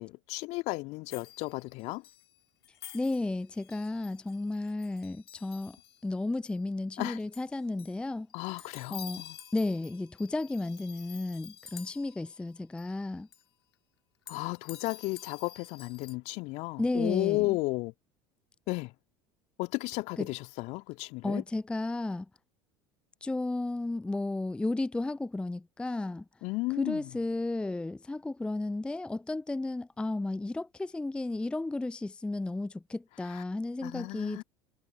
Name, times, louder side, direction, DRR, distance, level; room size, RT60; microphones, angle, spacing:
voice 1, 0.0-2.0 7.0-7.2 8.3-9.4 14.3-17.9 18.7-18.9 19.6-21.4 26.4-27.1 33.3-33.4 33.8-34.4, left 22 dB, 55° left, 1.9 m, -34 dB
sound 1, 1.1-2.3 2.6-6.1 6.4-6.5 6.8-7.0 7.3-8.0 8.3-12.5 12.8-13.1 13.3-13.4 14.3-16.2, left 10 dB, 75° left, 3.7 m, -50 dB
voice 2, 2.9-5.8 6.0-8.3 8.9-9.2 9.5-13.3 16.8-17.6 20.2-20.3 21.2-22.3 23.2-26.2 26.8-34.4, left 2 dB, 5° left, 0.5 m, -33 dB
figure-of-eight pair, 70°, 14 cm